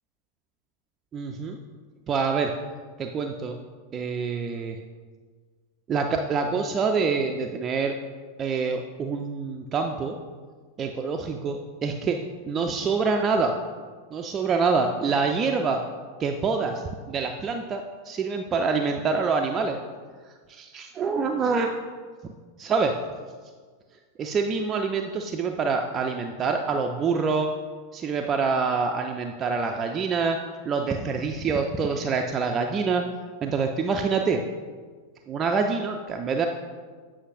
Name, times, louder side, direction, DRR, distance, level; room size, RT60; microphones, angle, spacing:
voice 1, 1.1-1.6 2.1-2.5 3.0-3.6 3.9-4.8 5.9-8.0 8.4-10.2 10.8-12.2 12.5-13.5 14.1-15.8 16.2-16.8 17.1-19.8 20.5-21.7 22.6-22.9 24.2-27.5 27.9-30.4 30.7-33.0 33.4-34.4 35.3-36.5, right 5 dB, 25° right, 3 dB, 0.4 m, -26 dB
8.0 x 5.6 x 2.5 m, 1.5 s
figure-of-eight pair, 90°, 0 cm